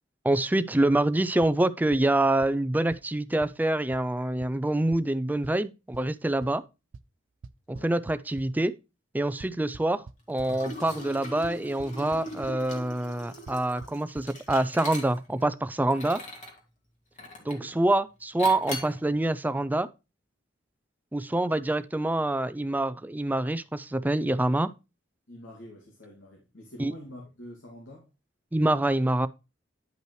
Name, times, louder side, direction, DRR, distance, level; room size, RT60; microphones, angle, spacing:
voice 1, 0.2-6.6 7.7-8.7 9.1-16.2 17.5-19.9 21.1-24.7 26.8-26.9 28.5-29.3, right 1 dB, 10° right, 0.4 m, -26 dB
sound 1, 1.4-1.5 1.9-2.0 2.4-2.5 2.9-3.0 3.4-3.5 3.9-4.0 4.4-4.5 4.9-5.0 5.4-5.5 5.9-6.0 6.4-6.5 6.9-7.0 7.4-8.4 9.4-10.5 11.4-11.5 11.8-12.2 12.4-12.5 13.5-13.6 13.8-13.9 14.2-14.3 14.5-14.6, right 4 dB, 85° right, 0.5 m, -43 dB
Liquid, 10.4-15.4 15.9-16.6 17.2-17.7 18.4-19.0, left 1 dB, 40° left, 2.1 m, -40 dB
voice 2, 17.4-17.8 25.3-28.1, left 1 dB, 85° left, 2.2 m, -46 dB
10.5 x 5.5 x 3.1 m
head